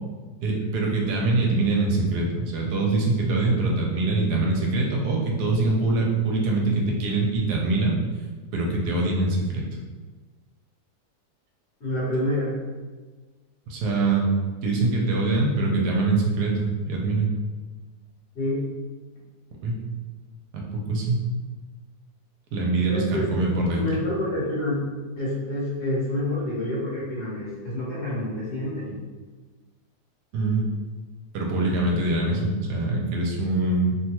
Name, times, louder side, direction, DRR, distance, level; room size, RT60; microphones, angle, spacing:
voice 1, 0.4-8.0 8.5-9.6 13.7-14.3 14.6-17.3 19.6-19.8 20.5-21.3 22.5-23.8 30.3-30.7 31.3-34.0, right 2 dB, 85° right, -1 dB, 1.2 m, -24 dB
voice 2, 11.8-12.5 18.3-18.6 22.9-23.3 23.7-24.8 25.2-29.0, left 1 dB, 45° left, -7 dB, 1.2 m, -28 dB
3.1 x 2.2 x 2.9 m, 1.3 s
omnidirectional pair, 1.7 m